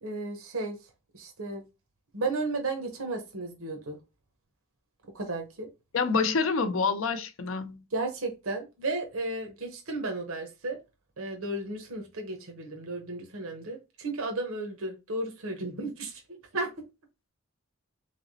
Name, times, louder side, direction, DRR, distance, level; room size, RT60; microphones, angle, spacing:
voice 1, 0.0-0.8 1.1-1.6 2.1-4.0 5.1-5.7 7.9-10.8 11.2-16.7, right 2 dB, 80° right, 1.0 m, -34 dB
voice 2, 5.9-7.8, left 4 dB, 70° left, 0.6 m, -27 dB
4.0 x 3.4 x 2.7 m
head